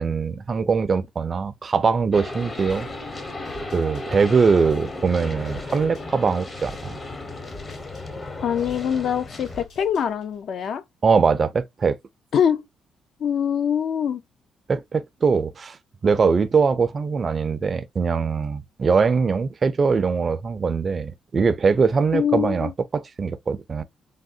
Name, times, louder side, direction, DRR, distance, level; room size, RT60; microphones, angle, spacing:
voice 1, 0.0-2.9 3.6-7.0 11.0-12.0 14.7-15.8 16.0-23.8, right 5 dB, 40° right, 0.4 m, -22 dB
sound 1, 2.1-9.6, left 2 dB, 30° left, 0.7 m, -35 dB
sound 2, 2.6-10.5, left 2 dB, 85° left, 2.1 m, -48 dB
voice 2, 8.4-10.8 12.3-12.6 13.2-14.2 22.1-22.7, left 8 dB, 65° left, 0.4 m, -23 dB
3.5 x 2.1 x 2.5 m
cardioid pair, 90°, 0 cm